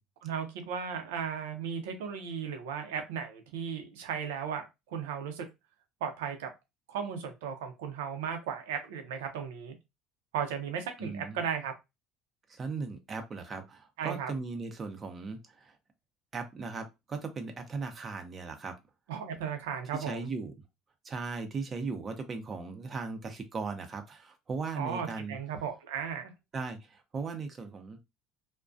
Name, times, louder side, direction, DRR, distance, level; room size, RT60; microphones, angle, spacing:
voice 1, 0.2-5.5 6.0-6.5 6.9-9.8 10.3-11.7 14.0-14.3 19.1-20.3 24.7-26.3, right 7 dB, 85° right, 6 dB, 0.6 m, -36 dB
voice 2, 11.0-11.4 12.5-15.7 16.3-18.7 19.9-20.5 21.0-25.4 26.5-28.0, right 4 dB, 35° right, 6 dB, 0.6 m, -38 dB
2.3 x 2.2 x 2.5 m, 0.22 s
supercardioid pair, 85°, 0 cm